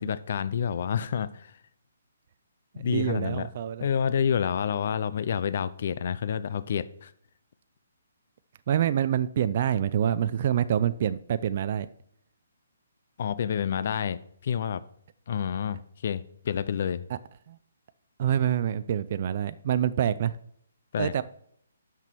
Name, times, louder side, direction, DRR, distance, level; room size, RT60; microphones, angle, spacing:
voice 1, 0.0-1.5 2.8-3.5 3.8-7.1 13.2-14.8 15.3-17.0 20.9-21.2, left 8 dB, 50° left, 15 dB, 0.4 m, -29 dB
voice 2, 2.8-3.8 8.7-11.9 17.1-17.2 17.5-17.6 18.2-20.3 21.0-21.2, right 10 dB, 40° right, 14 dB, 0.3 m, -26 dB
9.0 x 6.0 x 4.5 m, 0.65 s
hypercardioid pair, 165°, 0 cm